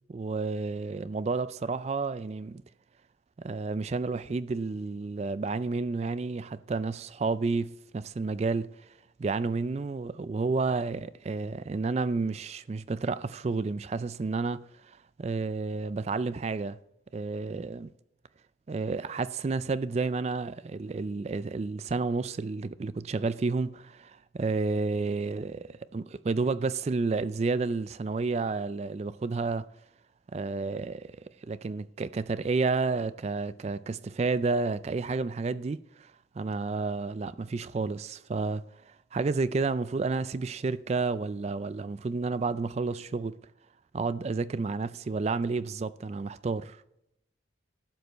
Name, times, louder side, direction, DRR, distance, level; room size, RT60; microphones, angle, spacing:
voice 1, 0.1-2.6 3.4-8.7 9.2-16.8 17.1-17.9 18.7-29.6 30.3-31.1 31.4-36.1 36.4-38.6 39.1-43.4 43.9-46.8, right 3 dB, 35° right, 0.3 m, -31 dB
12.5 x 5.3 x 7.8 m
head